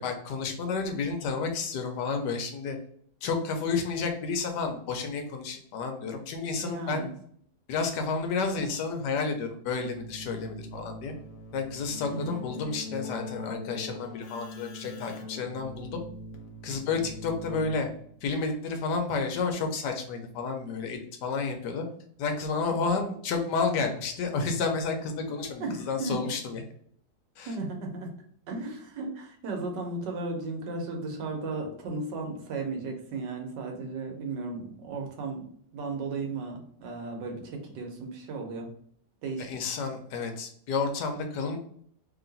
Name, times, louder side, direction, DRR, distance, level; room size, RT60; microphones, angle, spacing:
voice 1, 0.0-2.8 3.2-7.1 7.7-11.1 11.5-16.0 16.6-17.9 18.2-21.8 22.2-26.6 27.4-27.5 39.4-41.6, left 4 dB, 80° left, 5 dB, 1.3 m, -31 dB
voice 2, 6.6-7.1 12.1-12.4 22.7-22.9 25.6-26.2 27.5-38.7 39.2-39.5, right 3 dB, 85° right, 2 dB, 1.5 m, -35 dB
Keyboard (musical), 9.8-18.2, left 2 dB, 60° left, 0.9 m, -42 dB
3.2 x 2.9 x 3.9 m, 0.62 s
omnidirectional pair, 1.8 m